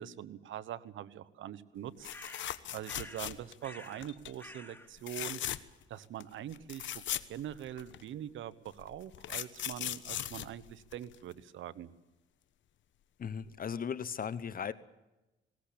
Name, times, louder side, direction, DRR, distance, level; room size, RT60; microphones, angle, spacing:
voice 1, 0.0-2.5 2.7-5.4 5.9-7.0 7.3-11.9, right 11 dB, 75° right, 15 dB, 1.2 m, -43 dB
sound 1, 2.0-3.7 4.0-4.3 5.0-5.8 6.2-6.3 6.5-8.0 8.8-11.3 13.2-13.4 13.7-13.8, left 12 dB, 70° left, 1.1 m, -39 dB
sound 2, 2.1-3.3 3.6-4.1 4.4-4.9, left 1 dB, 10° left, 2.7 m, -50 dB
voice 2, 13.2-14.7, left 7 dB, 45° left, 16 dB, 0.9 m, -37 dB
20.0 x 19.0 x 8.6 m, 1.0 s
cardioid pair, 90°, 20 cm